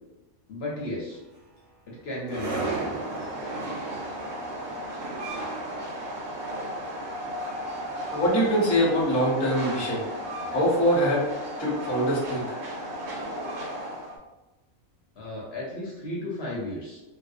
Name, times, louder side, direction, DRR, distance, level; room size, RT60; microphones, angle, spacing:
voice 1, 0.5-1.2 1.9-2.9 15.2-17.0, left 1 dB, 60° left, -5 dB, 0.7 m, -34 dB
sound 1, 1.1-12.2, right 4 dB, 90° right, 1.1 m, -41 dB
Train, 2.3-14.2, equal, 65° right, 1.1 m, -34 dB
voice 2, 8.1-10.0 10.5-11.2 11.6-12.5, equal, 25° left, -6 dB, 0.3 m, -23 dB
2.5 x 2.0 x 2.5 m, 1.0 s
omnidirectional pair, 1.4 m